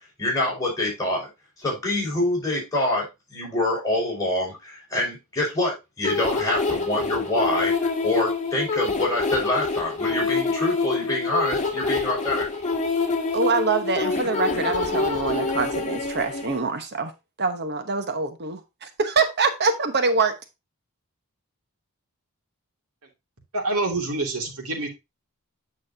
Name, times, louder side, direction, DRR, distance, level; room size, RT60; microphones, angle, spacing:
voice 1, 0.2-1.3 1.6-12.5, left 2 dB, 15° left, 5.6 m, -26 dB
sound 1, 6.0-16.6, left 3 dB, 35° left, 1.9 m, -26 dB
voice 2, 13.3-17.1 17.4-20.3, right 4 dB, 50° right, 1.0 m, -24 dB
voice 3, 23.5-24.9, right 2 dB, 80° right, 2.7 m, -26 dB
9.0 x 6.3 x 2.7 m
head